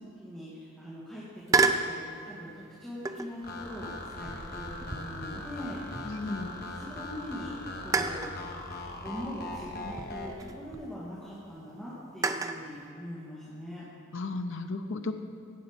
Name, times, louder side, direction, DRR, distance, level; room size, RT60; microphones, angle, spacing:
voice 1, 0.2-8.3 9.0-13.8, equal, 5° left, -10 dB, 2.1 m, -42 dB
sound 1, 1.5-1.9 3.1-3.4 4.1-6.4 6.8-6.9 7.9-8.4 9.5-10.9 12.2-12.7, right 4 dB, 15° right, 0.4 m, -31 dB
sound 2, 3.4-10.4, left 2 dB, 50° left, 1.2 m, -40 dB
voice 2, 6.1-6.5 14.1-15.1, left 3 dB, 65° left, 7 dB, 0.6 m, -34 dB
17.0 x 7.0 x 5.2 m, 2.6 s
head